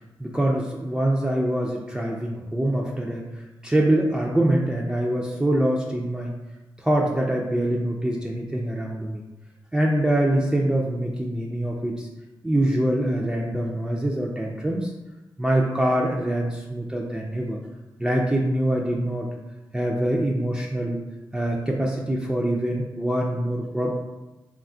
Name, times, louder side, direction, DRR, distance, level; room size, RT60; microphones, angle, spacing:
voice 1, 0.2-6.3 6.8-9.2 9.7-12.1 12.4-14.9 15.4-17.6 18.0-19.3 19.7-21.0 21.3-23.9, right 1 dB, 10° right, -2 dB, 0.4 m, -24 dB
3.4 x 2.3 x 2.5 m, 1.1 s
cardioid pair, 55°, 8 cm